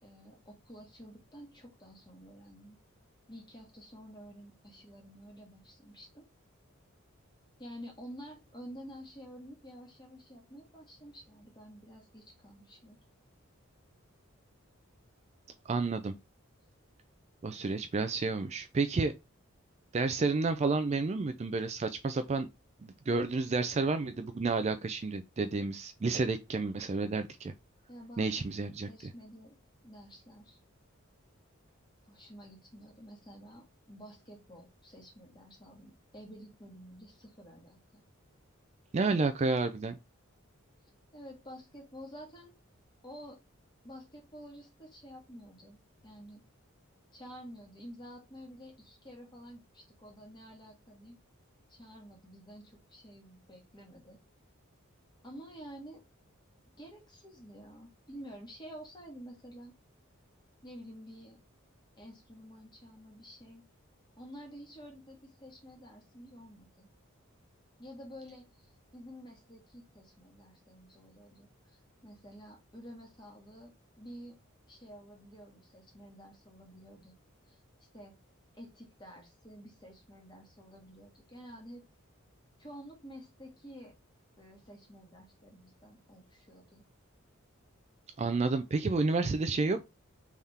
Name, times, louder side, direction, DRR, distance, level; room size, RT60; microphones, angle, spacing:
voice 1, 0.0-2.8 3.3-6.3 7.6-13.0 27.9-28.5 28.9-29.6 29.8-30.6 32.0-38.0 41.1-42.5 43.0-43.4 43.8-46.5 47.1-51.2 51.7-54.2 55.2-56.1 56.8-59.7 60.6-61.4 61.9-63.6 64.2-66.9 67.8-74.4 74.7-77.1 77.5-78.2 78.5-81.9 82.6-84.0 84.4-86.8, equal, 20° left, 1.6 m, -50 dB
voice 2, 15.7-16.1 17.4-19.1 19.9-22.5 22.8-27.5 28.2-28.9 38.9-40.0 88.2-89.9, right 3 dB, 30° right, 0.3 m, -30 dB
3.6 x 3.5 x 4.2 m
head